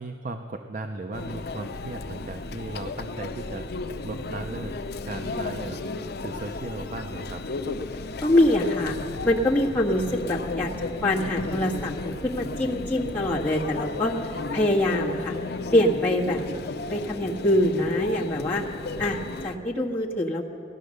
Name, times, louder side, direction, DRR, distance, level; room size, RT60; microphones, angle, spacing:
voice 1, 0.0-3.7 4.0-4.7 5.0-7.4 19.0-19.3, right 2 dB, 45° right, 6 dB, 0.6 m, -36 dB
Conversation / Chatter / Crowd, 1.1-19.5, left 3 dB, 60° left, 0.6 m, -34 dB
voice 2, 8.2-9.0 9.2-10.7 11.0-15.3 15.7-16.4 16.9-18.6 19.0-20.5, left 1 dB, 10° left, -6 dB, 1.6 m, -24 dB
16.5 x 11.0 x 6.5 m, 2.6 s
head